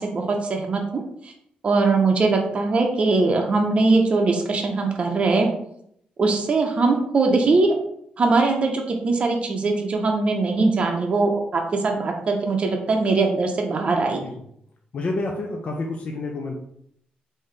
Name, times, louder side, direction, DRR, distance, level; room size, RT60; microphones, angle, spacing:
voice 1, 0.0-1.3 1.6-5.5 6.2-7.8 8.2-14.3, right 3 dB, 40° right, 1 dB, 0.6 m, -21 dB
voice 2, 14.9-16.6, left 2 dB, 45° left, 1 dB, 0.5 m, -28 dB
3.7 x 2.7 x 3.2 m, 0.72 s
cardioid pair, 100°, 3 cm